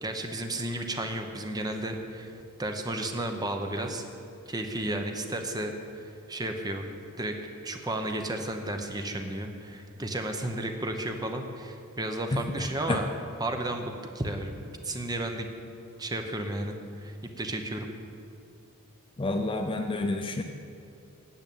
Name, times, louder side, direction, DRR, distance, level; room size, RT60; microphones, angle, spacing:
voice 1, 0.0-4.0 4.5-6.9 7.2-7.3 7.6-13.1 13.4-14.5 14.8-15.5 16.0-17.9, right 1 dB, 20° right, 4 dB, 0.9 m, -33 dB
voice 2, 19.2-20.4, left 2 dB, 25° left, 5 dB, 0.5 m, -28 dB
9.2 x 6.8 x 8.6 m, 2.5 s
head